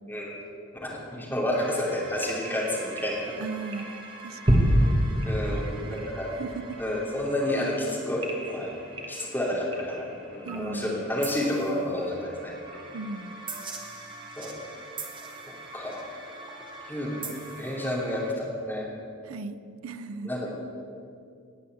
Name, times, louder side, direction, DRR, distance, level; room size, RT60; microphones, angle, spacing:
voice 1, 0.8-3.2 5.3-6.3 6.8-8.7 9.1-12.5 14.4-14.6 15.5-16.1 16.9-18.9 20.2-20.5, left 1 dB, 10° left, -4 dB, 2.9 m, -30 dB
sound 1, 1.5-18.3, equal, 25° right, 1.5 m, -32 dB
voice 2, 3.4-4.0 4.2-4.6 5.5-6.0 6.3-6.8 10.4-11.0 12.9-13.4 19.2-19.6 19.8-20.3, right 4 dB, 85° right, 13 dB, 0.5 m, -37 dB
18.5 x 6.9 x 7.9 m, 2.4 s
head